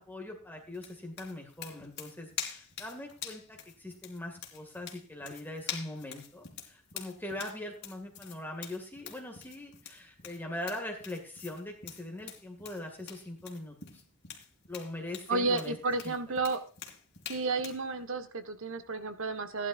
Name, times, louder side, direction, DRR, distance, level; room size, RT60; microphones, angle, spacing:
voice 1, 0.0-14.0 14.7-15.7 16.0-16.1, left 1 dB, 10° left, 2 dB, 2.1 m, -41 dB
sound 1, 0.7-17.8, left 8 dB, 50° left, 2.9 m, -45 dB
voice 2, 15.3-16.6 17.3-19.7, right 3 dB, 65° right, 9 dB, 1.5 m, -32 dB
16.5 x 11.0 x 2.6 m, 0.39 s
head